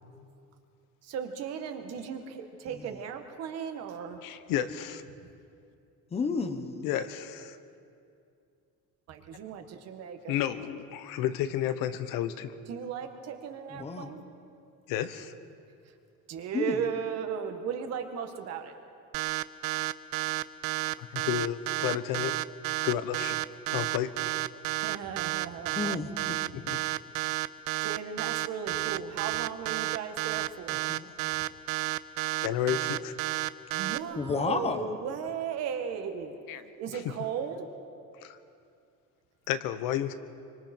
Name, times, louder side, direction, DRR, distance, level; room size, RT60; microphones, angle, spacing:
voice 1, 1.0-4.2 5.1-5.2 9.1-10.3 12.7-14.2 16.3-18.7 24.8-26.0 27.8-30.9 33.7-36.4 36.8-37.7, right 7 dB, 50° right, 5 dB, 1.7 m, -36 dB
voice 2, 4.2-5.0 6.8-7.6 10.3-12.5 14.9-15.3 21.0-22.4 22.8-23.3 23.7-24.1 26.5-26.8 32.4-33.1 36.5-36.6 36.9-37.0 38.2-38.4 39.5-40.1, left 11 dB, 80° left, 12 dB, 1.2 m, -31 dB
voice 3, 6.1-6.9 13.8-14.1 16.5-16.8 25.7-26.4 30.9-31.1 34.2-34.9, left 4 dB, 20° left, 8 dB, 1.0 m, -31 dB
sound 1, 19.1-34.0, right 19 dB, 80° right, 0.6 m, -31 dB
26.0 x 24.5 x 4.5 m, 2.5 s
cardioid pair, 180°, 33 cm